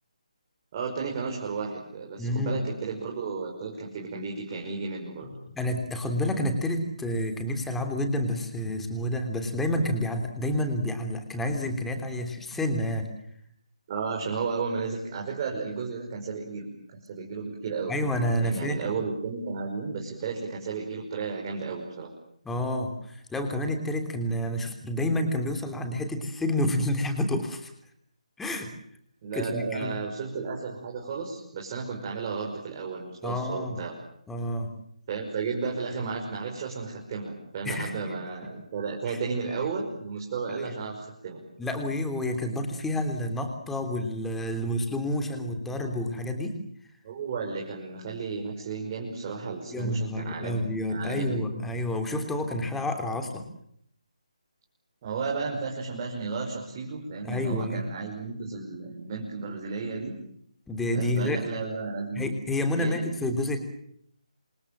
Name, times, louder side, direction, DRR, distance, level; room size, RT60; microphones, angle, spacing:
voice 1, 0.7-5.3 13.9-17.9 18.4-22.1 29.2-34.0 35.1-41.4 47.0-50.6 50.9-51.4 55.0-60.2 60.9-62.4 62.7-63.0, right 4 dB, 30° right, -1 dB, 5.5 m, -33 dB
voice 2, 2.2-2.6 5.5-13.1 17.9-18.9 22.4-27.7 28.4-28.7 29.3-30.0 33.2-33.8 34.3-34.7 37.6-38.1 39.1-39.2 41.6-46.6 49.7-53.5 57.2-57.8 60.7-61.4 62.1-63.6, left 1 dB, 5° left, 5 dB, 3.3 m, -29 dB
28.0 x 26.5 x 7.7 m, 0.70 s
figure-of-eight pair, 150°, 4 cm